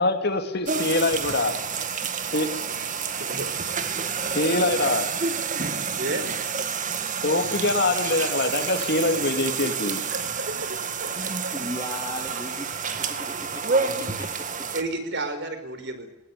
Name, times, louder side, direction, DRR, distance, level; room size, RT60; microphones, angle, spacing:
voice 1, 0.0-1.6 2.3-2.5 4.3-5.1 7.2-10.0, left 2 dB, 50° left, 5 dB, 2.8 m, -24 dB
sound 1, 0.7-14.8, right 5 dB, 35° right, 2.0 m, -29 dB
voice 2, 3.2-3.5 6.0-6.3 10.1-11.6 14.7-16.1, right 2 dB, 50° right, 9 dB, 4.7 m, -32 dB
voice 3, 11.5-12.7 13.1-14.3, left 1 dB, 20° left, -1 dB, 2.8 m, -36 dB
21.0 x 20.0 x 9.7 m, 0.87 s
head